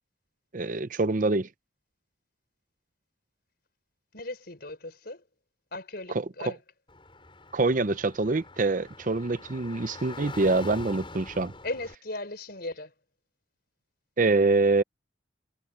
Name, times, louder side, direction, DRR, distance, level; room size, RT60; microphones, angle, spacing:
voice 1, 0.5-1.5 7.5-11.5 14.2-14.8, right 3 dB, 45° right, 0.6 m, -25 dB
voice 2, 4.1-5.2 5.7-6.6 11.6-12.9, left 2 dB, 55° left, 5.3 m, -37 dB
Car / Traffic noise roadway noise, 6.9-11.9, left 2 dB, 25° left, 6.5 m, -44 dB
head